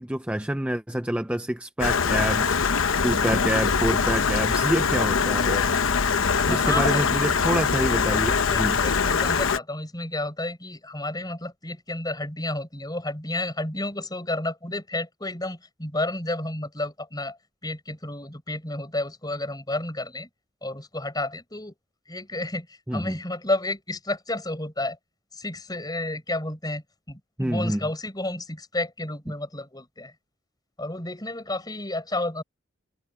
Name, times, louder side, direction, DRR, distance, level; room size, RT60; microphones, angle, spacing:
voice 1, 0.0-2.6 3.0-5.6 6.5-8.8 22.9-23.2 27.4-27.9, right 1 dB, 5° right, 0.5 m, -27 dB
Stream, 1.8-9.6, left 5 dB, 85° left, 0.9 m, -23 dB
voice 2, 6.3-7.0 8.5-17.4 17.6-20.3 20.6-21.7 22.1-25.0 25.3-30.1 30.8-32.4, left 2 dB, 20° left, 6.4 m, -31 dB
head